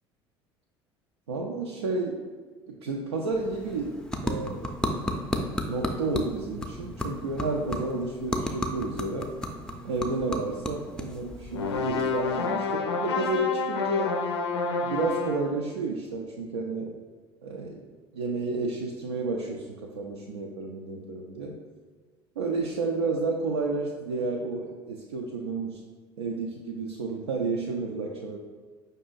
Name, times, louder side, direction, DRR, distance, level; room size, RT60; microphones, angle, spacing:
voice 1, 1.3-2.2 2.7-4.7 5.7-9.3 9.8-14.1 14.8-16.9 17.4-17.9 18.1-21.6 22.4-25.8 26.2-28.4, right 3 dB, 75° right, -1 dB, 0.4 m, -31 dB
sound 1, 3.1-12.6, left 1 dB, 5° left, 0.5 m, -34 dB
sound 2, 11.5-15.5, left 4 dB, 75° left, 0.5 m, -29 dB
5.2 x 2.6 x 3.8 m, 1.5 s
figure-of-eight pair, 60°, 14 cm